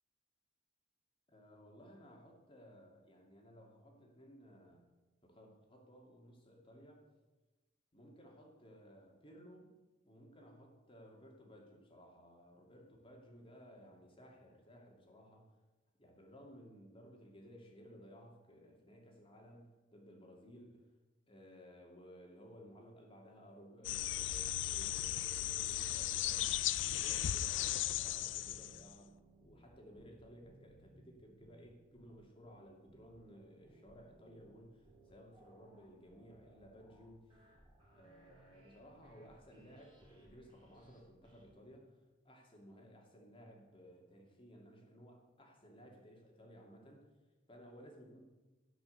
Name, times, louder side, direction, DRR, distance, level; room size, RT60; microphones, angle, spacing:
voice 1, 1.3-4.9 5.2-7.0 7.9-9.7 10.0-15.5 16.0-20.9 21.3-29.1 29.4-37.4 37.9-47.0 47.5-48.2, equal, 30° left, 1 dB, 2.7 m, -58 dB
sound 1, 23.8-28.9, left 13 dB, 75° left, 0.4 m, -36 dB
sound 2, 25.7-27.5 28.0-41.5, right 1 dB, 25° right, 4.6 m, -64 dB
17.0 x 6.1 x 7.9 m, 1.2 s
head